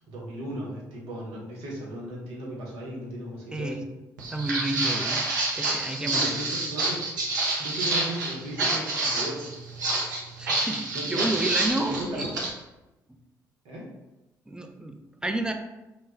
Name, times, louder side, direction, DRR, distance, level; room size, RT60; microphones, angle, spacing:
voice 1, 0.1-3.8 5.9-9.5 10.9-11.3 11.7-12.2 13.6-13.9, right 1 dB, 70° right, -3 dB, 0.8 m, -36 dB
voice 2, 3.5-3.8 4.3-5.2 5.5-6.4 10.4-12.3 14.5-15.5, right 1 dB, 10° right, 4 dB, 0.4 m, -30 dB
Walk footsteps, 4.2-12.5, right 2 dB, 85° right, 0.4 m, -28 dB
2.1 x 2.1 x 3.4 m, 1.0 s
figure-of-eight pair, 45°, 10 cm